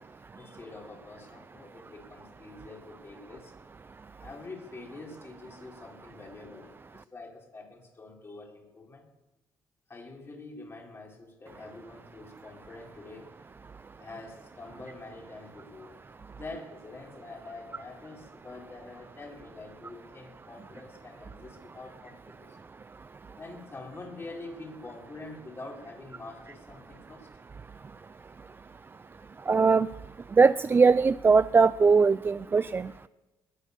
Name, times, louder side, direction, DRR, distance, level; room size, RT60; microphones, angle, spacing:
voice 1, 0.0-3.5 4.2-9.1 9.9-13.5 14.0-16.0 16.3-22.6 23.4-27.3, left 3 dB, 35° left, 0 dB, 4.8 m, -46 dB
voice 2, 29.5-29.9 30.4-33.1, right 4 dB, 30° right, 15 dB, 0.5 m, -21 dB
22.0 x 8.4 x 6.9 m, 1.0 s
cardioid pair, 80°, 7 cm